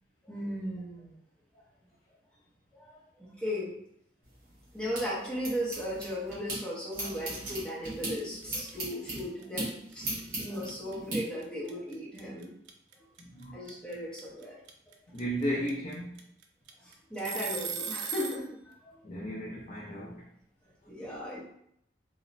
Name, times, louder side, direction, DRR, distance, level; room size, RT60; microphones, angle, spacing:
voice 1, 0.2-1.1 2.7-3.7 4.7-12.5 13.5-14.6 14.9-15.0 16.8-19.1 20.9-21.4, equal, 5° left, 0.7 m, -37 dB
sound 1, 4.2-6.6 6.9-11.2, right 1 dB, 50° right, 1.1 m, -38 dB
sound 2, 7.2-7.4 7.7-18.4, right 6 dB, 85° right, 0.4 m, -38 dB
voice 2, 13.2-13.6 13.9-14.0 15.1-16.3 19.0-20.3, equal, 35° left, 0.4 m, -35 dB
2.9 x 2.1 x 2.5 m
head